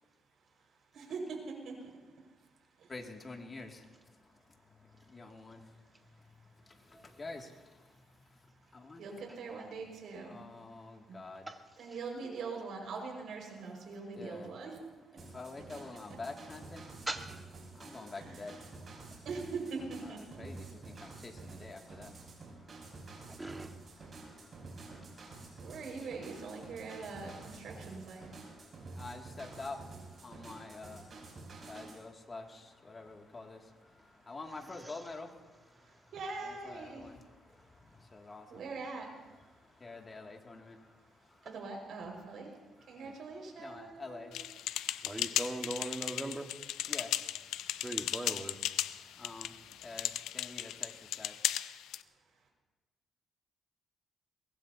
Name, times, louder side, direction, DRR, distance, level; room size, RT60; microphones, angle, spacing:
voice 1, 0.9-1.7 9.0-10.4 11.8-14.7 18.1-18.5 19.3-20.2 25.6-28.3 36.1-37.0 38.5-39.1 41.4-42.5 42.9-44.5, right 4 dB, 70° right, 1 dB, 5.3 m, -42 dB
voice 2, 2.9-4.3 4.7-5.8 6.2-6.3 6.6-8.4 8.7-9.1 10.3-11.5 14.2-14.5 15.3-16.9 17.7-18.6 18.9-19.3 20.4-23.5 23.9-25.7 28.6-36.1 36.6-37.2 37.5-38.6 39.5-41.4 42.8-43.0 43.6-45.4 46.9-47.8 48.1-48.2 48.8-51.3, left 3 dB, 30° left, 2 dB, 2.4 m, -48 dB
sound 1, 15.2-32.0, right 3 dB, 45° right, 5.6 m, -50 dB
voice 3, 17.1-17.4 23.3-23.7 34.8-35.0 45.0-46.5 47.8-48.6, right 2 dB, 15° right, 4 dB, 1.6 m, -39 dB
sound 2, 44.3-52.0, left 12 dB, 90° left, 0.5 m, -36 dB
23.0 x 21.0 x 2.8 m, 1.3 s
cardioid pair, 90°, 0 cm